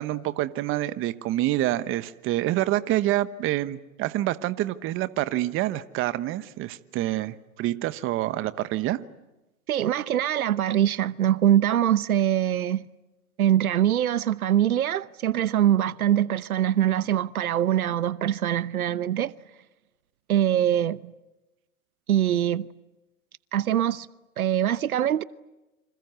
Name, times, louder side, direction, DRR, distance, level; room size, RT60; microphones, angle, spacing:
voice 1, 0.0-9.0, right 15 dB, 30° right, 1.1 m, -27 dB
voice 2, 9.7-12.8 13.4-19.3 20.3-21.1 22.1-22.7 23.5-24.1 24.4-25.2, right 11 dB, 85° right, 1.0 m, -23 dB
28.0 x 26.5 x 8.2 m
hypercardioid pair, 125°, 42 cm